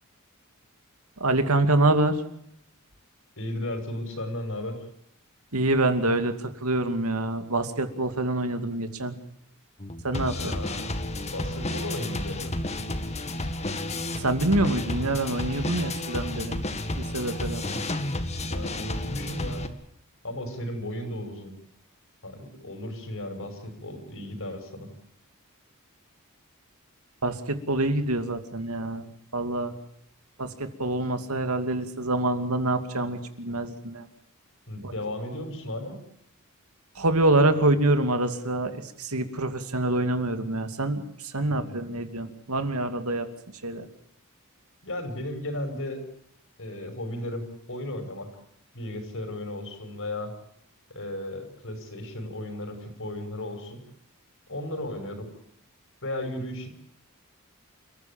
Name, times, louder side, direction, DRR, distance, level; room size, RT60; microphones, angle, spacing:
voice 1, 1.2-2.2 5.5-9.2 10.0-10.5 14.2-16.6 17.0-17.6 27.2-29.1 29.3-29.7 30.4-34.1 34.8-34.9 37.0-43.3 43.6-43.9, right 2 dB, 80° right, 8 dB, 2.6 m, -26 dB
voice 2, 3.4-4.8 10.3-10.9 11.3-12.5 17.5-17.9 18.4-19.7 20.2-21.5 22.2-24.9 34.7-36.0 41.5-41.8 44.8-46.0 46.6-48.3 48.7-50.3 50.9-53.8 54.5-55.3 56.0-56.7, left 1 dB, 65° left, 7 dB, 5.9 m, -35 dB
sound 1, 9.8-19.7, left 1 dB, 30° left, 2.0 m, -31 dB
29.0 x 14.5 x 8.7 m, 0.72 s
head